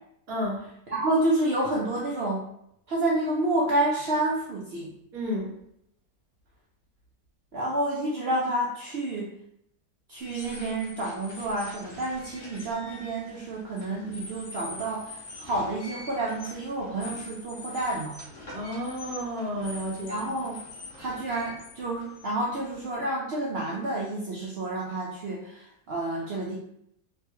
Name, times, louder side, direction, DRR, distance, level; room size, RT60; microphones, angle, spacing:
voice 1, 0.3-0.7 5.1-5.5 18.5-20.2, equal, 70° right, -3 dB, 1.2 m, -31 dB
voice 2, 0.9-2.4 2.9-4.9 7.5-9.3 10.1-18.2 20.1-20.6 21.0-26.6, right 1 dB, 90° right, -4 dB, 0.5 m, -29 dB
sound 1, 10.2-22.9, left 2 dB, 60° left, 1.0 m, -44 dB
3.1 x 2.2 x 3.0 m, 0.74 s
omnidirectional pair, 1.7 m